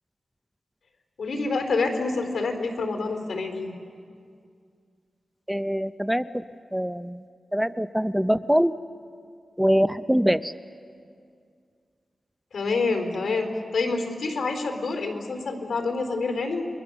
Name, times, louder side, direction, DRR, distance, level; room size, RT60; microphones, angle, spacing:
voice 1, 1.2-3.7 12.5-16.7, left 3 dB, 80° left, 5 dB, 4.0 m, -27 dB
voice 2, 5.5-6.4 6.7-7.2 7.5-8.7 9.6-10.5, equal, 5° right, 12 dB, 0.5 m, -23 dB
29.5 x 23.5 x 7.0 m, 2.2 s
wide cardioid pair, 85°, 0 cm